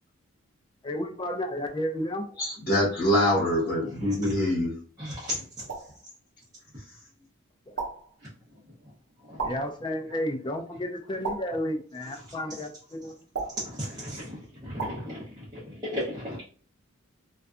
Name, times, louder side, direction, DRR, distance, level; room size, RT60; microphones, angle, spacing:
voice 1, 0.8-2.3 7.7-7.8 9.4-13.2, equal, 20° left, 0.3 m, -32 dB
voice 2, 2.4-4.8, left 1 dB, 50° left, 1.1 m, -24 dB
voice 3, 3.8-4.4 5.0-5.7 9.2-9.7 10.1-10.2 12.0-12.3 13.6-16.5, equal, 20° right, 0.7 m, -37 dB
sound 1, 5.7-6.0 7.8-8.1 9.4-9.8 11.2-11.7 13.3-13.7 14.8-15.1, right 4 dB, 80° right, 0.7 m, -34 dB
2.5 x 2.3 x 2.3 m
head